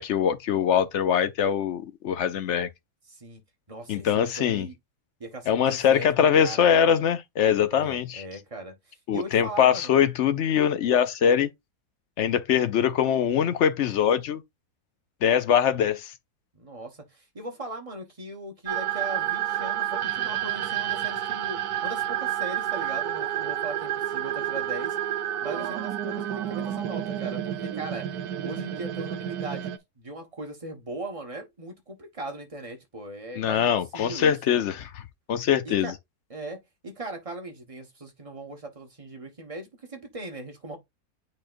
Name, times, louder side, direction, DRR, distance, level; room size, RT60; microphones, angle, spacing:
voice 1, 0.0-2.7 3.9-4.7 5.5-8.2 9.1-11.5 12.2-14.4 15.2-16.1 33.4-34.9 35.3-35.9, left 8 dB, 65° left, 0.7 m, -23 dB
voice 2, 3.1-3.4 3.7-4.1 4.4-4.8 5.2-6.1 6.4-6.7 7.7-10.0 16.5-28.2 28.4-33.7 33.9-34.6 35.6-35.9 36.3-40.8, right 2 dB, 25° right, 1.3 m, -39 dB
sound 1, 18.7-29.8, right 11 dB, 80° right, 1.2 m, -30 dB
8.7 x 4.2 x 2.5 m
omnidirectional pair, 1.6 m